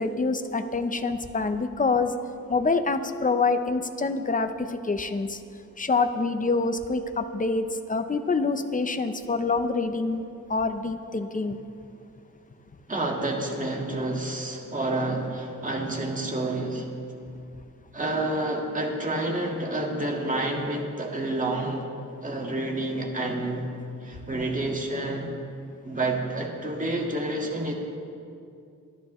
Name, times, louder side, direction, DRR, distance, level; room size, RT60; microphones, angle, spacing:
voice 1, 0.0-2.1 2.5-5.4 5.8-10.2 10.5-11.6, left 3 dB, 25° left, 8 dB, 0.7 m, -26 dB
voice 2, 12.9-16.9 17.9-21.8 22.2-23.7 24.0-25.3 25.8-27.7, right 2 dB, 25° right, 0 dB, 1.7 m, -29 dB
25.5 x 10.5 x 3.1 m, 2.5 s
wide cardioid pair, 140°, 32 cm